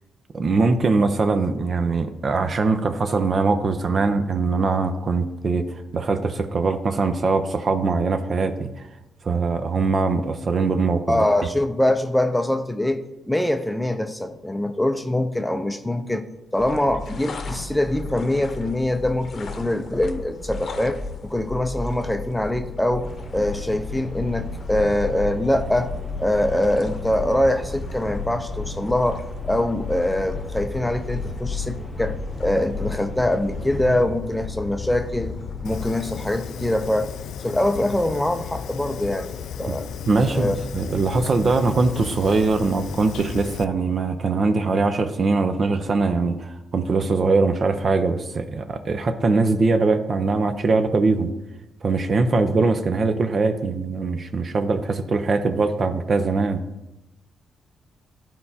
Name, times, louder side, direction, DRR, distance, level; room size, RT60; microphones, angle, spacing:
voice 1, 0.3-5.6 5.9-8.7 9.2-11.2 39.7-39.8 40.1-51.3 51.8-56.6, right 3 dB, 45° right, 8 dB, 0.6 m, -22 dB
voice 2, 11.1-13.0 13.3-16.2 16.5-23.1 23.3-25.9 26.2-35.4 35.6-37.1 37.4-39.9 40.3-40.6, left 1 dB, 5° left, 7 dB, 0.5 m, -23 dB
sound 1, 16.6-35.9, left 4 dB, 60° left, 0.8 m, -35 dB
sound 2, 23.0-34.0, left 3 dB, 10° right, 1.1 m, -35 dB
Fire, 35.6-43.6, left 7 dB, 85° left, 0.3 m, -35 dB
12.0 x 4.4 x 2.8 m, 0.94 s
cardioid pair, 95°, 0 cm